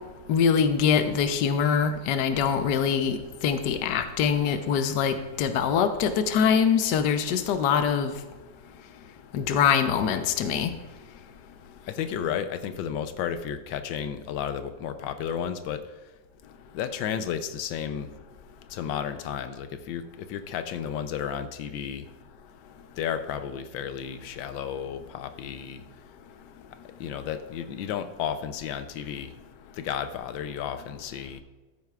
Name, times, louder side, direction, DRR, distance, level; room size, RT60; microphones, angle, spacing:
voice 1, 0.3-8.1 9.3-10.7, left 7 dB, 70° left, 8 dB, 1.3 m, -24 dB
voice 2, 11.8-15.8 16.7-18.1 18.7-22.1 23.0-25.8 27.0-29.5 29.7-31.4, left 8 dB, 90° left, 10 dB, 1.4 m, -33 dB
13.5 x 9.2 x 2.4 m, 1.2 s
omnidirectional pair, 2.0 m